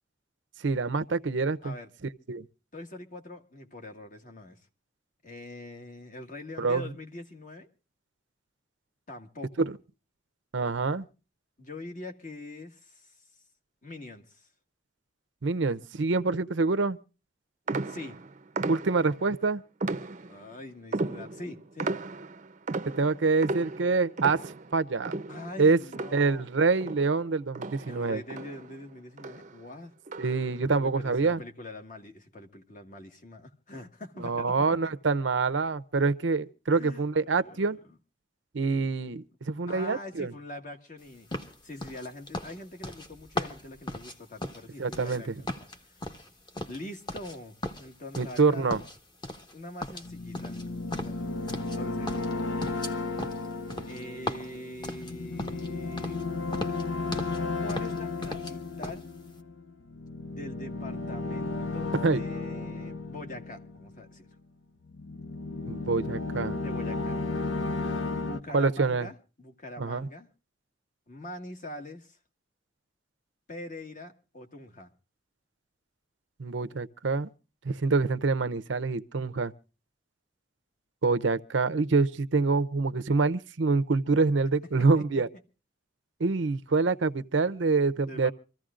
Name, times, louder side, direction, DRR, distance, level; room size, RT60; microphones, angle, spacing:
voice 1, 0.6-1.7 2.3-2.4 6.6-6.8 9.6-9.7 10.5-11.1 15.4-17.0 18.7-19.6 23.0-25.1 25.6-25.8 26.1-28.2 30.2-31.4 34.2-37.8 38.5-40.3 44.8-45.2 48.2-48.8 62.0-62.2 65.7-66.6 68.5-69.1 69.8-70.1 76.4-77.3 77.6-79.5 81.0-85.3 86.2-88.3, right 4 dB, 75° right, 0.7 m, -26 dB
voice 2, 2.7-4.6 5.2-7.7 9.1-9.7 11.6-13.2 13.8-14.5 17.8-18.2 20.3-21.9 25.3-26.5 27.8-29.9 30.8-34.9 36.7-37.0 37.4-38.0 39.7-41.3 41.6-45.5 46.7-48.8 49.5-50.6 51.0-52.2 53.9-56.2 57.6-59.1 60.3-64.3 66.6-67.2 68.2-70.3 71.1-72.2 73.5-74.9 85.0-85.1 88.0-88.3, left 1 dB, 45° left, 1.8 m, -43 dB
sound 1, 17.7-19.3 19.8-20.5 20.9-26.5 26.8-28.8 29.2-29.6 30.1-30.5, right 3 dB, 40° right, 0.6 m, -35 dB
sound 2, 41.3-45.2 45.5-47.4 47.6-48.4 48.7-49.5 49.8-51.8 52.1-55.7 56.0-56.2 56.5-57.4 57.7-58.5 58.8-59.0, left 1 dB, 25° left, 1.3 m, -37 dB
sound 3, 50.0-64.3 64.9-68.4, left 3 dB, 80° left, 0.8 m, -34 dB
26.0 x 14.5 x 2.5 m
head